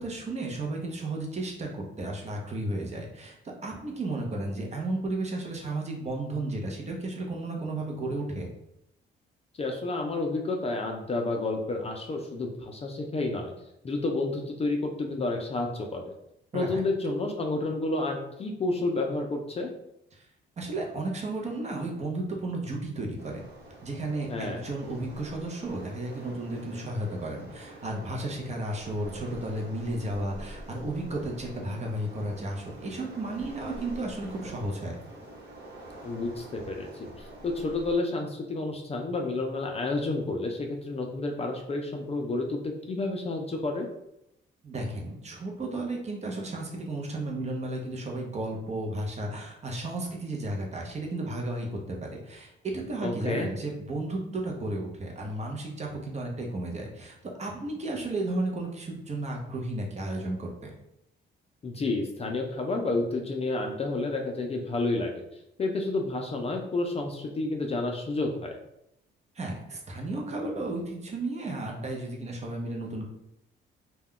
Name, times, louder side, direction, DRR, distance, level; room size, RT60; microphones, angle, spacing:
voice 1, 0.0-3.4 3.6-8.5 16.5-16.8 20.1-20.3 20.6-23.4 23.8-35.0 44.6-60.7 69.3-73.0, right 2 dB, 35° right, 0 dB, 0.7 m, -33 dB
voice 2, 9.5-13.5 13.8-16.0 16.5-19.7 24.3-24.6 36.0-42.6 42.9-43.9 53.0-53.5 61.6-65.1 65.6-68.6, left 2 dB, 30° left, 2 dB, 0.4 m, -30 dB
Waves surf, 23.2-38.0, right 1 dB, 60° right, 1.0 m, -46 dB
2.3 x 2.2 x 3.6 m, 0.81 s
cardioid pair, 90°, 20 cm